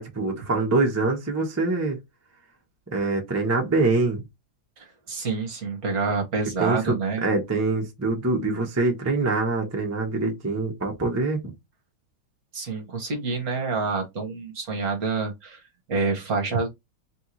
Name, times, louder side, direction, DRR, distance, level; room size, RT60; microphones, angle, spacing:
voice 1, 0.0-2.0 2.9-4.2 6.6-11.5, right 3 dB, 10° right, 0.8 m, -24 dB
voice 2, 4.8-7.2 12.5-15.6 15.9-16.7, right 4 dB, 50° right, 1.5 m, -27 dB
4.4 x 3.4 x 3.2 m
omnidirectional pair, 2.2 m